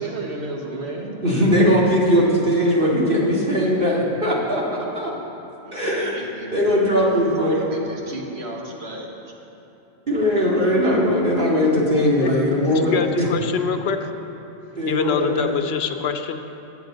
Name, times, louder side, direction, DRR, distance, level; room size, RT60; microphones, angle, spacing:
voice 1, 0.0-1.2 5.6-6.6 6.9-7.1 7.4-9.1, right 2 dB, 70° right, -1 dB, 1.7 m, -33 dB
voice 2, 1.2-4.6 4.9-5.1 5.7-6.1 6.5-7.7 10.1-13.3 14.7-15.5, equal, 50° right, -5 dB, 2.5 m, -19 dB
voice 3, 12.6-14.1 14.9-16.4, left 6 dB, 70° left, 7 dB, 0.8 m, -25 dB
20.5 x 8.0 x 3.9 m, 3.0 s
omnidirectional pair, 1.1 m